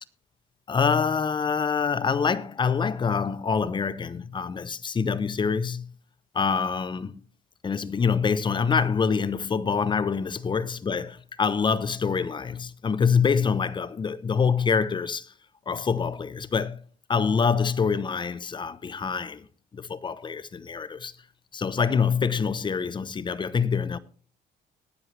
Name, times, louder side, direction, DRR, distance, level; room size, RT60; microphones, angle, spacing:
voice 1, 0.7-5.9 6.3-7.2 7.6-15.3 15.7-16.8 17.1-19.5 19.7-21.1 21.5-24.0, left 6 dB, 30° left, 0.8 m, -25 dB
19.0 x 7.6 x 3.3 m
cardioid pair, 110°, 17 cm